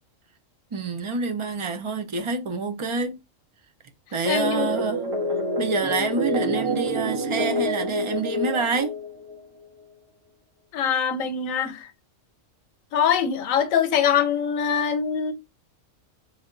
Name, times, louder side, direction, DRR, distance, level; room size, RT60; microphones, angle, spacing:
voice 1, 0.7-3.2 4.1-5.1 5.6-9.0, right 3 dB, 55° right, 0.3 m, -27 dB
voice 2, 4.3-4.7 10.7-11.9 12.9-15.3, left 7 dB, 80° left, 1.1 m, -23 dB
sound 1, 4.3-9.4, equal, 85° right, 1.6 m, -27 dB
3.4 x 2.8 x 3.6 m
omnidirectional pair, 1.4 m